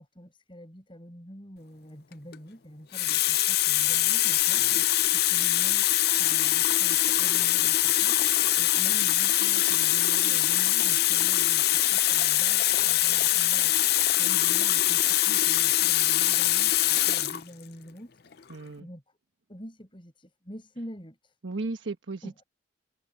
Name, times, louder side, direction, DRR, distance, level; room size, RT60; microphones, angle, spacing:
voice 1, 0.0-5.9 6.1-19.2 19.5-21.4 22.2-22.3, equal, 25° left, 7.9 m, -46 dB
Water tap faucet, 2.1-2.4 2.9-17.4 18.3-18.5, left 14 dB, 55° left, 0.6 m, -23 dB
voice 2, 18.5-18.9 21.4-22.4, right 3 dB, 75° right, 1.2 m, -36 dB
head